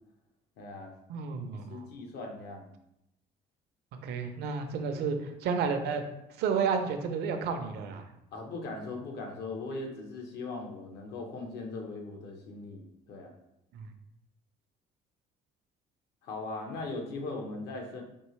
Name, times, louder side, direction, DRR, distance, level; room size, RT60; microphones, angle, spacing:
voice 1, 0.6-0.9 1.7-2.7 8.3-13.3 16.2-18.0, left 3 dB, 75° left, 2 dB, 1.0 m, -39 dB
voice 2, 1.1-1.8 4.0-6.0 6.4-8.0 13.7-13.9, right 5 dB, 75° right, 6 dB, 0.6 m, -31 dB
4.5 x 2.9 x 3.1 m, 0.83 s
cardioid pair, 110°, 17 cm